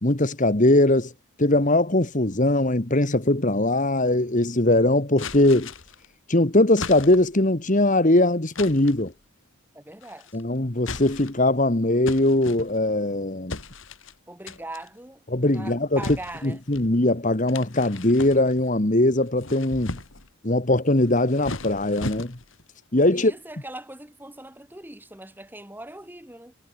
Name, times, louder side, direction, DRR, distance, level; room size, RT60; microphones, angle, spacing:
voice 1, 0.0-1.1 1.4-5.7 6.3-9.1 10.3-13.6 15.3-16.0 16.4-20.0 20.4-22.4 22.9-23.3, left 1 dB, 35° left, 1.5 m, -21 dB
sound 1, 5.2-6.1 6.8-7.4 8.6-9.1 10.0-10.4 10.8-11.5 12.1-13.0 13.5-14.1 14.5-14.9 16.0-16.9 17.5-18.7 19.2-20.3 21.0-22.6, left 3 dB, 60° left, 2.6 m, -37 dB
voice 2, 9.7-10.4 14.3-15.2 15.5-16.6 23.1-26.5, right 1 dB, 10° right, 3.5 m, -40 dB
head